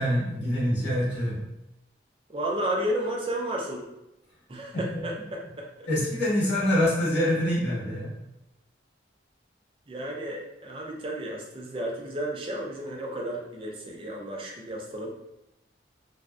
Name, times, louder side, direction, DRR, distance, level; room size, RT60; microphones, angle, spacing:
voice 1, 0.0-1.3 5.9-8.1, left 1 dB, 85° left, -8 dB, 1.1 m, -25 dB
voice 2, 2.3-3.8 4.5-5.9 9.9-15.1, right 1 dB, 30° right, -1 dB, 0.4 m, -32 dB
2.5 x 2.2 x 2.3 m, 0.90 s
head